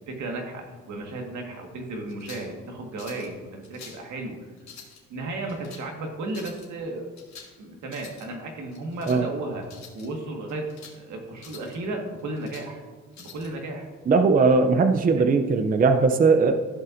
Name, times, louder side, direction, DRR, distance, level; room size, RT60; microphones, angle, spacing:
voice 1, 0.1-4.4 5.1-7.1 7.6-9.7 9.9-10.7 10.9-12.8 13.2-13.9 15.0-15.3, right 2 dB, 75° right, 1 dB, 1.7 m, -34 dB
sound 1, 2.1-2.5 3.0-3.3 3.6-4.0 4.6-5.0 5.5-5.8 6.3-6.7 7.2-7.6 7.8-8.3 8.7-9.2 9.6-10.1 10.5-11.0 11.4-11.8 12.2-12.7 13.1-13.5, left 6 dB, 65° left, 2.0 m, -46 dB
voice 2, 14.1-16.6, right 4 dB, 30° right, 8 dB, 0.5 m, -19 dB
15.0 x 5.4 x 2.6 m, 1.5 s
cardioid pair, 90°, 30 cm